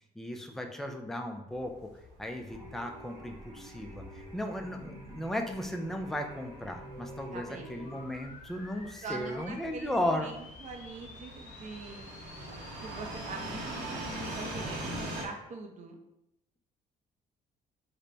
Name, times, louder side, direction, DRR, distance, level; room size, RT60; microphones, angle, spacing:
voice 1, 0.2-1.9 2.2-4.0 4.3-10.3, left 1 dB, ahead, 3 dB, 0.4 m, -35 dB
sound 1, 1.5-15.2, right 1 dB, 85° right, 0.9 m, -43 dB
sound 2, 2.5-8.0, equal, 25° right, 0.9 m, -48 dB
voice 2, 7.3-7.9 9.0-12.1 12.8-16.0, right 4 dB, 45° right, 3 dB, 0.6 m, -43 dB
sound 3, 7.8-15.3, left 4 dB, 45° left, 0.6 m, -52 dB
3.3 x 2.2 x 3.8 m, 0.84 s
cardioid pair, 110°, 17 cm